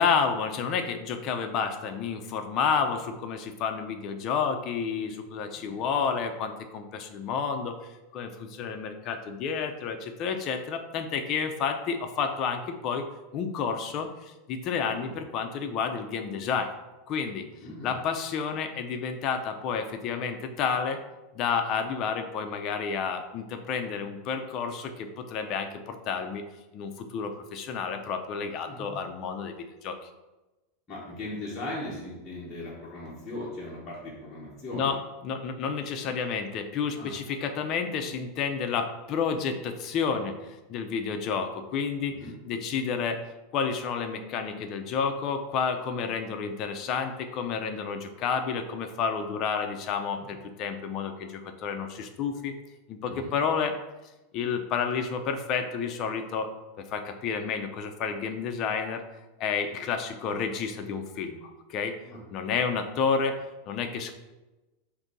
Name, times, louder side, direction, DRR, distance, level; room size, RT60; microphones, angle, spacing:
voice 1, 0.0-7.8 8.1-13.0 13.3-16.7 17.1-17.5 17.8-21.0 21.3-26.4 26.7-30.0 34.7-35.0 35.2-42.1 42.5-43.2 43.5-52.5 52.9-53.7 54.3-56.5 56.8-59.0 59.4-62.0 62.3-63.4 63.7-64.1, left 6 dB, 35° left, 5 dB, 0.5 m, -30 dB
voice 2, 5.5-5.9 14.9-15.2 17.6-18.0 28.7-28.9 30.9-34.9 37.0-37.1 42.1-42.3 50.1-50.3 53.1-53.3 62.0-62.2, left 1 dB, 15° left, -8 dB, 1.0 m, -39 dB
4.9 x 2.6 x 3.9 m, 1.1 s
supercardioid pair, 160°, 0 cm